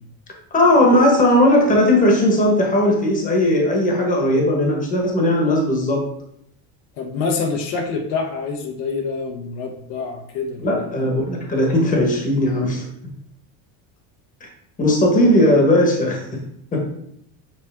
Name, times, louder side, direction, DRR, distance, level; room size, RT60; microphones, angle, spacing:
voice 1, 0.5-6.0 10.6-12.8 14.4-14.5 14.8-16.2 16.7-16.8, left 1 dB, 20° left, 1 dB, 1.2 m, -17 dB
voice 2, 7.0-10.9, left 4 dB, 65° left, 3 dB, 1.0 m, -26 dB
7.3 x 4.2 x 3.5 m, 0.74 s
cardioid pair, 160°, 42 cm